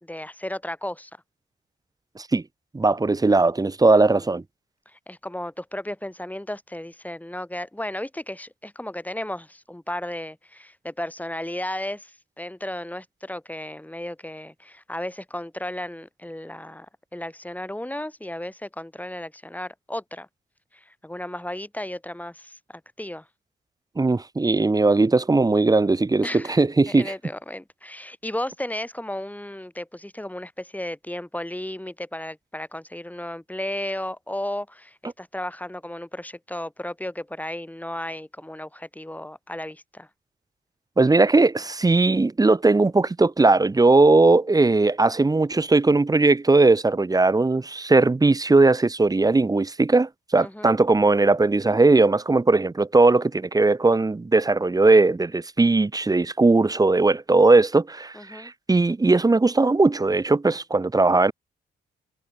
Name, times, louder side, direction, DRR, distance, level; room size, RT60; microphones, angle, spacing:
voice 1, 0.0-1.1 4.1-4.2 4.9-16.9 17.1-20.3 20.7-22.6 23.0-23.3 26.2-26.6 26.9-40.1 50.4-50.8 58.1-58.5, left 1 dB, 10° left, 2.7 m, -34 dB
voice 2, 2.7-4.4 24.0-27.1 41.0-61.3, right 3 dB, 20° right, 0.7 m, -19 dB
supercardioid pair, 65°, 20 cm